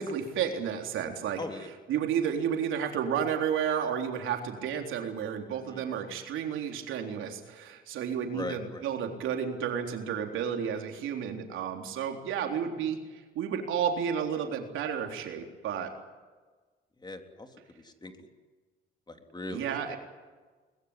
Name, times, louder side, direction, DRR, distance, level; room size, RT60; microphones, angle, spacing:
voice 1, 0.0-1.4 1.9-15.9 19.5-20.0, right 8 dB, 85° right, 3 dB, 3.8 m, -32 dB
voice 2, 1.4-1.7 5.7-6.0 8.3-8.9 17.0-18.3 19.1-19.9, left 2 dB, 20° left, 5 dB, 3.5 m, -40 dB
23.0 x 20.5 x 9.8 m, 1.4 s
cardioid pair, 90°, 20 cm